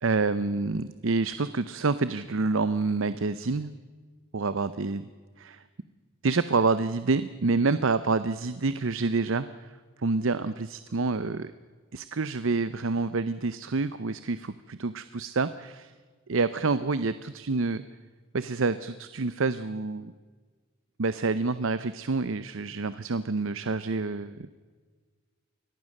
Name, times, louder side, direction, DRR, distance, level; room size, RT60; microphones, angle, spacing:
voice 1, 0.0-3.7 4.3-5.1 5.4-5.6 6.2-9.7 10.0-11.5 11.9-15.9 16.3-17.8 18.3-20.1 21.0-24.5, right 3 dB, 60° right, 14 dB, 0.7 m, -28 dB
23.5 x 18.5 x 6.5 m, 1.5 s
head